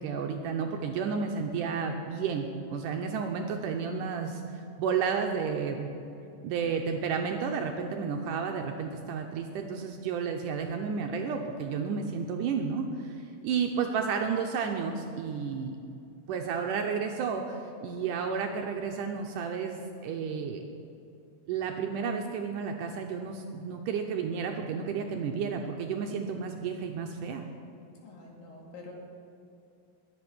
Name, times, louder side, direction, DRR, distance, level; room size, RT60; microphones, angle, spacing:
voice 1, 0.0-5.9 6.4-15.7 16.3-20.6 21.5-27.4, right 6 dB, 75° right, 3 dB, 2.0 m, -32 dB
voice 2, 28.0-28.9, left 3 dB, 70° left, -1 dB, 3.9 m, -47 dB
21.5 x 7.8 x 6.1 m, 2.6 s
omnidirectional pair, 4.3 m